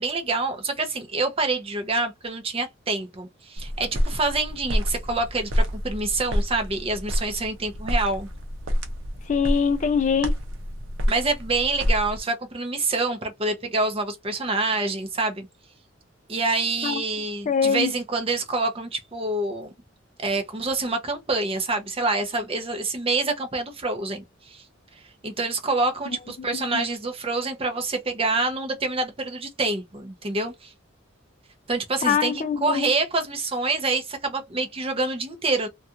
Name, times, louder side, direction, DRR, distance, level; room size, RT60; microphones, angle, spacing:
voice 1, 0.0-8.3 11.1-15.5 16.3-19.7 20.2-24.6 25.2-30.7 31.7-35.7, right 3 dB, 30° right, 0.6 m, -26 dB
sound 1, 3.6-12.2, equal, 90° right, 0.7 m, -28 dB
voice 2, 9.3-10.3 16.8-17.0 17.5-17.9 26.7-26.8 32.0-32.9, left 6 dB, 40° left, 0.3 m, -23 dB
2.4 x 2.3 x 2.7 m
head